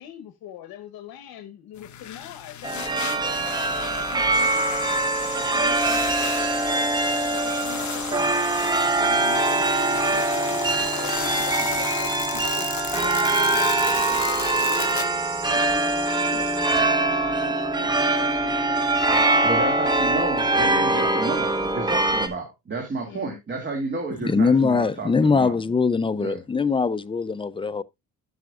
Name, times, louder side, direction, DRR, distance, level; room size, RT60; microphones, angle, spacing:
voice 1, 0.0-4.9 5.1-7.0 7.3-15.1 15.4-19.6 20.0-20.2 20.9-21.3 23.0-23.4, left 10 dB, 85° left, 1.0 m, -41 dB
sound 1, 1.8-15.0, left 10 dB, 55° left, 0.9 m, -35 dB
sound 2, 2.6-22.3, right 2 dB, 10° right, 0.9 m, -23 dB
sound 3, 4.3-16.8, right 4 dB, 55° right, 2.9 m, -38 dB
voice 2, 19.4-25.5 26.2-26.4, right 3 dB, 30° right, 2.1 m, -31 dB
voice 3, 24.2-27.8, left 4 dB, 15° left, 0.4 m, -22 dB
12.5 x 5.8 x 2.3 m
cardioid pair, 140°, 35 cm